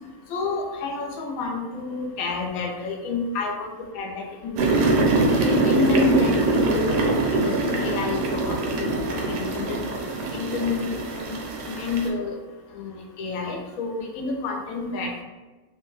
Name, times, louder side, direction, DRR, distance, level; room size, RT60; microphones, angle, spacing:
voice 1, 0.3-4.7 5.4-7.0 7.3-9.9 10.3-11.4 11.6-12.4 12.7-15.2, left 3 dB, 80° left, 1 dB, 1.1 m, -29 dB
sound 1, 4.6-12.1, right 2 dB, 65° right, 0.8 m, -23 dB
2.9 x 2.2 x 3.0 m, 1.2 s
omnidirectional pair, 1.5 m